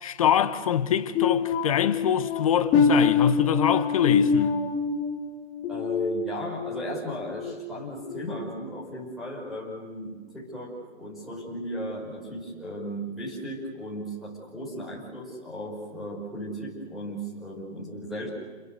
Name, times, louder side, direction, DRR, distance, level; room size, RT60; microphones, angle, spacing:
voice 1, 0.0-4.5, left 9 dB, 30° left, 1.2 m, -24 dB
sound 1, 1.2-6.8 7.2-7.5 8.0-8.2, left 5 dB, 15° left, 2.5 m, -25 dB
voice 2, 5.7-18.3, equal, ahead, 5.6 m, -36 dB
29.5 x 23.5 x 6.7 m
hypercardioid pair, 165°, 34 cm